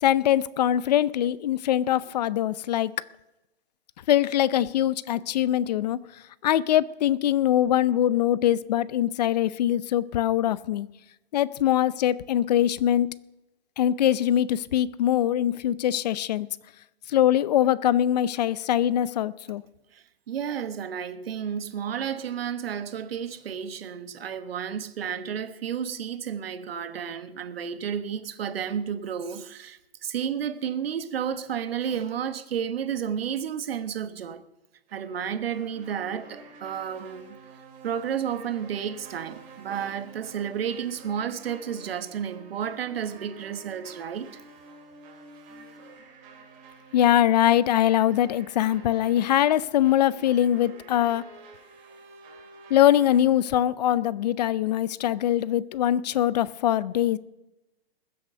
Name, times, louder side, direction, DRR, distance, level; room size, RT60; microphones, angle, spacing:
voice 1, 0.0-2.9 4.1-6.0 6.4-10.9 11.3-13.1 13.8-16.5 17.1-19.6 46.9-51.2 52.7-57.2, left 11 dB, 40° left, 0.6 m, -22 dB
voice 2, 19.9-34.4 34.9-37.4 37.8-44.4, right 8 dB, 70° right, 1.3 m, -32 dB
sound 1, 34.9-53.2, right 4 dB, 25° right, 2.7 m, -49 dB
21.0 x 7.9 x 6.8 m
hypercardioid pair, 155°, 31 cm